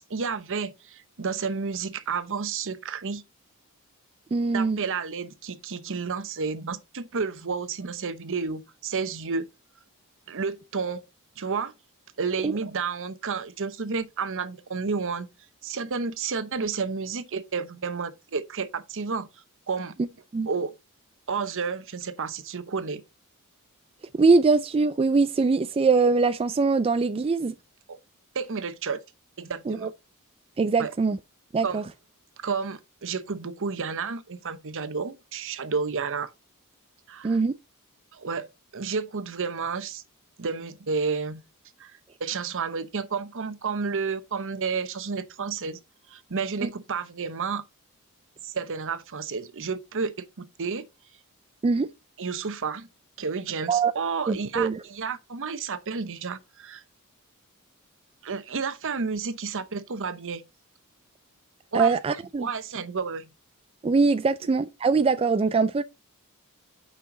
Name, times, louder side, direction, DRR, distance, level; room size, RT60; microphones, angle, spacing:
voice 1, 0.0-3.2 4.5-9.5 10.3-11.0 11.4-11.7 12.2-15.3 15.6-19.3 19.7-20.0 20.5-20.7 21.3-23.0 27.9-28.0 28.3-29.0 29.4-29.9 30.8-30.9 31.6-31.8 32.4-36.3 37.1-37.4 38.1-38.5 38.7-40.0 40.4-41.4 41.8-45.8 46.1-47.6 48.4-50.8 52.2-52.9 53.2-56.8 58.2-60.4 61.7-62.0 62.4-63.3, right 5 dB, 60° right, 0.9 m, -31 dB
voice 2, 4.3-4.8 12.4-12.5 20.0-20.1 20.3-20.5 24.1-27.6 29.7-29.9 30.6-31.2 31.5-31.8 37.2-37.6 46.6-46.7 51.6-51.9 53.7-53.9 54.3-54.8 61.7-62.5 63.8-65.8, right 4 dB, 25° right, 0.3 m, -22 dB
8.6 x 5.7 x 3.9 m
head